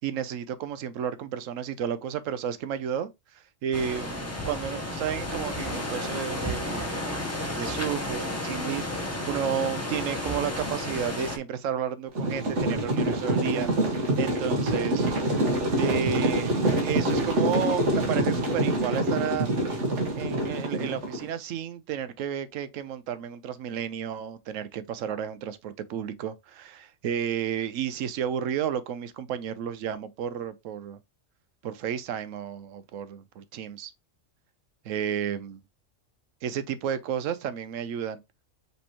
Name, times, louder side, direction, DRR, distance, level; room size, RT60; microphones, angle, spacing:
voice 1, 0.0-7.0 7.4-15.1 15.7-19.5 20.1-31.0 31.6-33.9 34.8-35.6 36.4-38.2, right 8 dB, 85° right, 1.0 m, -32 dB
sound 1, 3.7-11.4, left 1 dB, 15° left, 0.7 m, -32 dB
sound 2, 12.1-21.2, right 1 dB, 65° right, 1.6 m, -26 dB
5.3 x 3.3 x 2.9 m
omnidirectional pair, 1.3 m